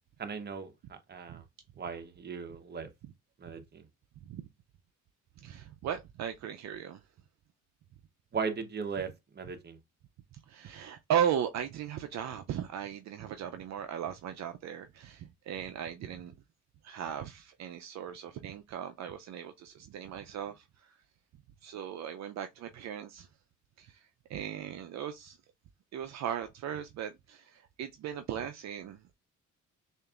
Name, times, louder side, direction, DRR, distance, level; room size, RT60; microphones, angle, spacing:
voice 1, 0.2-1.4 1.8-2.9 3.4-3.9 8.3-9.8, right 5 dB, 35° right, 0.9 m, -38 dB
voice 2, 5.4-7.0 10.3-16.3 16.8-21.0 21.6-23.3 23.8-24.0 24.3-25.4 25.9-29.1, right 9 dB, 65° right, 0.5 m, -37 dB
6.4 x 2.5 x 2.4 m
cardioid pair, 90°, 30 cm